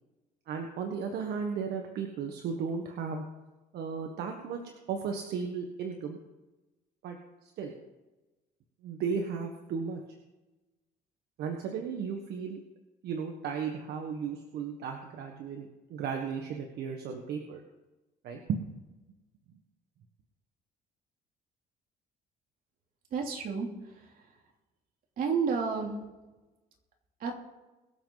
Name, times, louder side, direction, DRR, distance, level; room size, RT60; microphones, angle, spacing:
voice 1, 0.5-3.2 3.7-4.6 4.9-6.2 7.0-7.2 7.4-7.7 8.8-10.0 11.4-12.6 13.0-17.6 18.2-18.7, right 6 dB, 70° right, 3 dB, 1.5 m, -35 dB
voice 2, 23.1-24.1 25.2-25.9 27.2-27.3, right 5 dB, 55° right, 1 dB, 3.2 m, -31 dB
22.5 x 7.6 x 4.1 m, 1.1 s
cardioid pair, 110°, 17 cm